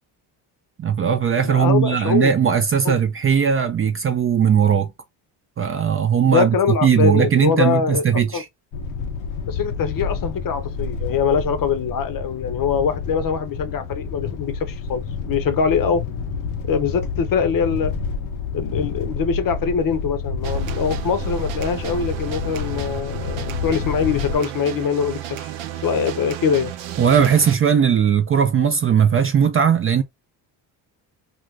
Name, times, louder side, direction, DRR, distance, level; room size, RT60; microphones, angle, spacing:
voice 1, 0.8-4.9 5.6-6.6 6.8-8.5 27.0-30.0, right 7 dB, 30° right, 0.4 m, -18 dB
voice 2, 1.4-2.3 6.2-8.0 8.3-8.4 9.5-16.0 16.7-17.9 18.5-25.5 25.8-26.7, left 6 dB, 45° left, 0.7 m, -23 dB
sound 1, 8.7-24.4, left 5 dB, 85° left, 0.8 m, -29 dB
sound 2, 20.4-27.6, right 11 dB, 75° right, 0.7 m, -32 dB
2.5 x 2.4 x 3.1 m
supercardioid pair, 80°, 46 cm